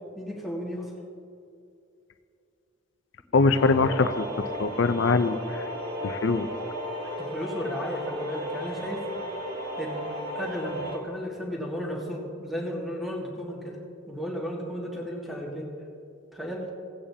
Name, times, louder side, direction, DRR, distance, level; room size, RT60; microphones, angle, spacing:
voice 1, 0.1-0.9 7.2-9.1 9.8-13.8 14.1-15.7 16.3-16.7, equal, ahead, -3 dB, 1.6 m, -34 dB
voice 2, 3.3-5.7 6.0-6.5, left 3 dB, 65° left, 12 dB, 0.5 m, -23 dB
sound 1, 3.5-11.0, equal, 55° right, 1.7 m, -34 dB
17.5 x 8.7 x 2.8 m, 2.6 s
head